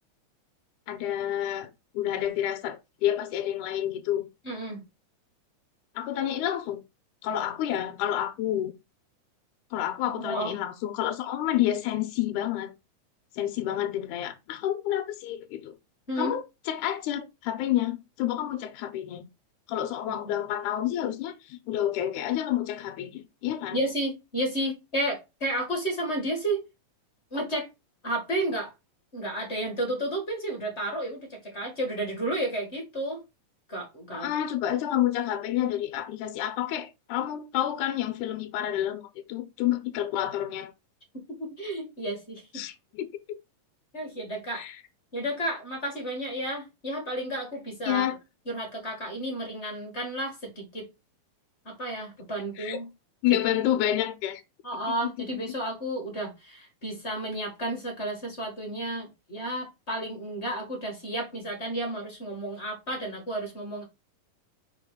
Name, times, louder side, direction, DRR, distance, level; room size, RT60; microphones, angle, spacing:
voice 1, 0.9-4.3 6.0-6.8 7.2-8.7 9.7-12.7 13.4-15.7 16.2-19.3 19.7-23.8 34.1-39.0 39.3-40.7 42.5-43.4 44.5-44.8 47.9-48.2 52.6-52.8 53.2-54.4 54.9-55.4, left 12 dB, 75° left, 2.1 m, -29 dB
voice 2, 4.4-4.8 10.1-10.5 16.1-16.4 20.1-20.4 23.7-26.6 27.3-27.7 28.0-28.7 29.1-33.2 33.7-34.3 41.4-42.5 43.9-44.6 45.1-48.1 48.4-50.8 51.6-52.9 53.3-53.6 54.6-63.8, right 1 dB, 25° left, 1.5 m, -32 dB
5.6 x 4.5 x 3.7 m
omnidirectional pair, 3.9 m